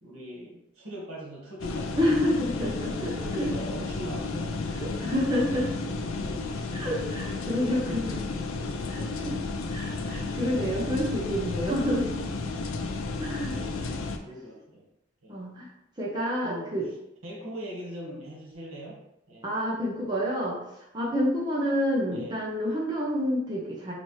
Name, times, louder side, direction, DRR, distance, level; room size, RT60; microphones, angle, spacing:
voice 1, 0.0-2.4 3.2-5.1 7.6-8.9 9.9-10.2 13.5-14.9 15.2-15.4 16.4-16.8 17.2-19.5 22.1-22.4, equal, 90° right, -2 dB, 1.3 m, -41 dB
sound 1, 1.6-14.2, left 3 dB, 80° left, 0.4 m, -32 dB
voice 2, 2.0-3.5 4.7-5.7 6.7-8.1 8.9-9.4 9.7-12.1 13.2-13.6 15.3-15.7 16.0-16.8 19.4-20.6 20.9-23.9, equal, 20° right, -4 dB, 0.8 m, -28 dB
4.2 x 2.9 x 3.2 m, 0.84 s
head